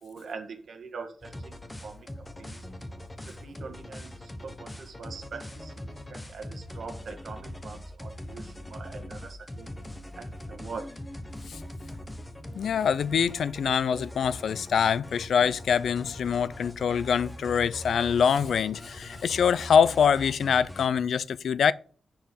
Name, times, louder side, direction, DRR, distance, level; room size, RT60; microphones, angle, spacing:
voice 1, 0.0-1.5 1.8-2.1 2.4-2.6 3.2-5.7 6.1-9.7 10.2-10.9, right 4 dB, 60° right, 1.9 m, -43 dB
sound 1, 1.2-20.9, left 1 dB, 15° left, 1.1 m, -42 dB
voice 2, 12.6-21.7, left 7 dB, 90° left, 0.4 m, -24 dB
10.5 x 4.7 x 5.3 m
wide cardioid pair, 160°, 0 cm